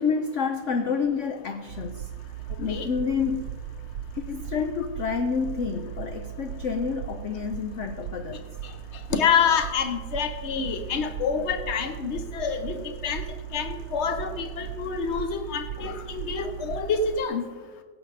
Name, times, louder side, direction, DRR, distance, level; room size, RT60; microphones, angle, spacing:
voice 1, 0.0-2.1 2.6-3.5 4.1-8.5, left 5 dB, 80° left, 7 dB, 0.6 m, -29 dB
sound 1, 1.7-17.2, right 10 dB, 80° right, 1.3 m, -38 dB
voice 2, 9.1-13.2 13.5-17.5, left 6 dB, 45° left, 8 dB, 1.0 m, -27 dB
16.5 x 8.0 x 4.1 m, 1.5 s
omnidirectional pair, 2.0 m